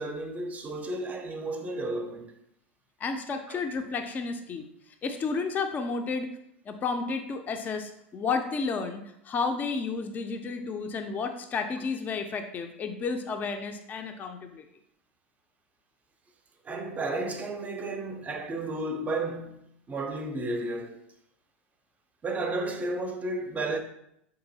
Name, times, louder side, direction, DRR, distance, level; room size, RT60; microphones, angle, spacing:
voice 1, 0.0-2.3 3.5-3.6 16.6-21.0 22.2-23.8, right 2 dB, 20° right, 0.5 m, -33 dB
voice 2, 3.0-4.7 5.0-6.3 6.7-14.6, left 4 dB, 25° left, 0.4 m, -32 dB
3.8 x 2.6 x 2.6 m
hypercardioid pair, 90°, 7 cm